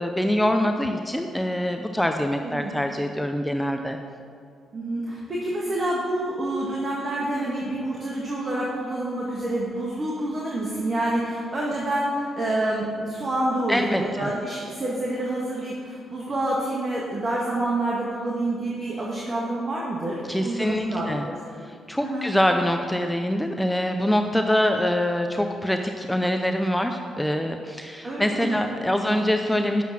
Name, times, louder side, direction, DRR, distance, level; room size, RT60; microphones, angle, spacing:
voice 1, 0.0-4.0 13.7-14.3 20.3-21.3 21.6-29.8, left 1 dB, 5° left, 5 dB, 0.7 m, -24 dB
voice 2, 4.7-21.4 22.0-22.3 28.0-28.6 29.1-29.2, right 1 dB, 45° right, -4 dB, 1.9 m, -28 dB
9.3 x 7.1 x 5.9 m, 2.3 s
supercardioid pair, 55°, 0 cm